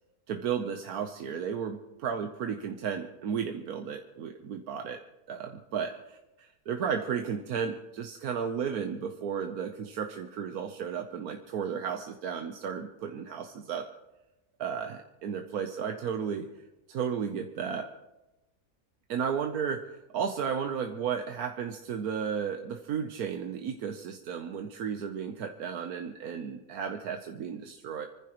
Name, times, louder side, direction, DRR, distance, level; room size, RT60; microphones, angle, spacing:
voice 1, 0.3-13.9 14.6-16.5 16.9-17.9 19.1-28.1, right 7 dB, 75° right, 5 dB, 1.3 m, -34 dB
26.5 x 14.5 x 3.0 m, 1.0 s
omnidirectional pair, 1.6 m